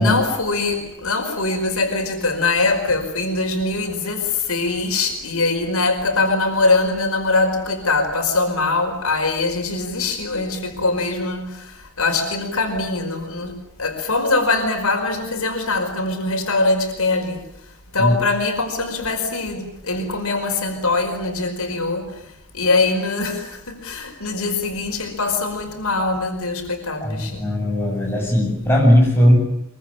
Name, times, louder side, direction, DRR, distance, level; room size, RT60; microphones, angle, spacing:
voice 1, 0.0-17.4 17.9-27.5, left 3 dB, 80° left, 5 dB, 5.0 m, -22 dB
voice 2, 27.0-29.4, equal, 10° left, -1 dB, 8.0 m, -17 dB
24.0 x 24.0 x 9.0 m, 0.75 s
head